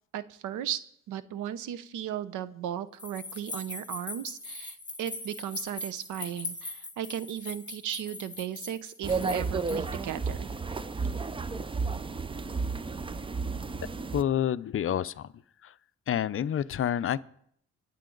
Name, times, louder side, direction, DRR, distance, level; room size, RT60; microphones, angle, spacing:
voice 1, 0.1-0.8 1.1-10.5, right 10 dB, 85° right, 0.8 m, -36 dB
sound 1, 3.0-10.0, left 2 dB, 25° left, 3.0 m, -40 dB
sound 2, 9.0-14.2, right 4 dB, 15° right, 0.5 m, -32 dB
voice 2, 14.1-15.3 15.6-15.7 16.1-17.2, left 10 dB, 45° left, 0.6 m, -28 dB
25.0 x 8.4 x 3.9 m
cardioid pair, 90°, 30 cm